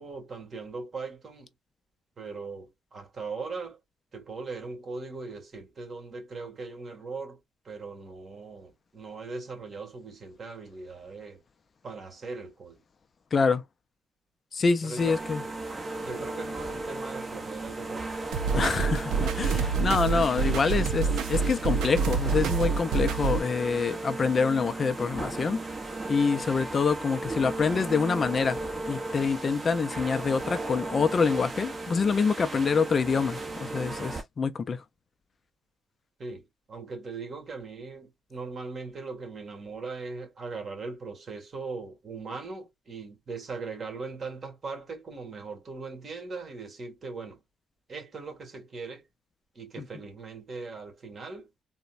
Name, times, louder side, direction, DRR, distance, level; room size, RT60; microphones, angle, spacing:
voice 1, 0.0-1.5 2.2-3.8 4.1-7.4 7.6-11.4 11.8-12.8 14.8-15.2 16.0-18.4 36.2-47.4 47.9-49.0 49.6-51.5, right 4 dB, 40° right, 1.8 m, -39 dB
voice 2, 13.3-13.6 14.5-15.4 18.5-25.6 26.1-28.6 28.9-34.8, left 5 dB, 40° left, 0.4 m, -26 dB
sound 1, 15.0-34.2, right 2 dB, 25° right, 1.0 m, -36 dB
sound 2, 18.3-23.4, right 5 dB, 85° right, 0.5 m, -27 dB
4.0 x 2.1 x 2.4 m
cardioid pair, 100°, 0 cm